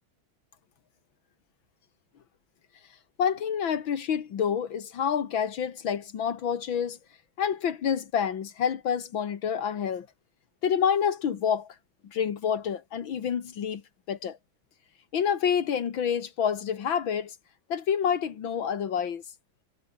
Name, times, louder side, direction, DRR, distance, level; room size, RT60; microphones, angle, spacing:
voice 1, 3.2-7.0 7.4-10.1 10.6-11.7 12.1-13.8 14.1-14.4 15.1-17.3 17.7-19.2, left 8 dB, 70° left, 2.3 m, -28 dB
omnidirectional pair, 2.2 m